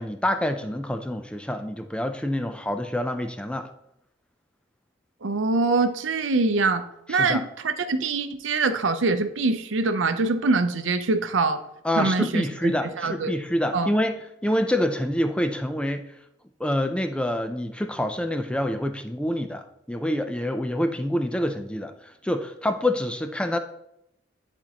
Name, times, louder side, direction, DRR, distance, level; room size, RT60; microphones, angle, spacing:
voice 1, 0.0-3.7 7.1-7.4 11.8-16.1 16.6-23.6, left 1 dB, 5° left, 7 dB, 0.4 m, -27 dB
voice 2, 5.2-6.8 7.1-11.6 12.0-12.5 13.0-13.3 13.7-13.9, right 3 dB, 75° right, 9 dB, 0.6 m, -24 dB
10.5 x 4.4 x 2.9 m, 0.81 s
head